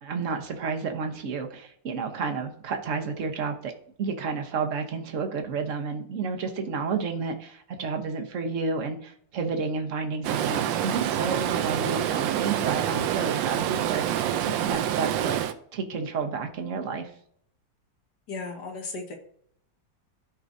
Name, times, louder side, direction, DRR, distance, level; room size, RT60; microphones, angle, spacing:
voice 1, 0.0-3.7 4.0-15.4 15.7-17.1, right 5 dB, 50° right, 4 dB, 1.2 m, -31 dB
Stream, 10.2-15.5, right 10 dB, 90° right, 1.4 m, -27 dB
voice 2, 18.3-19.1, left 3 dB, 65° left, 2 dB, 1.9 m, -35 dB
14.0 x 4.7 x 2.7 m, 0.66 s
omnidirectional pair, 2.0 m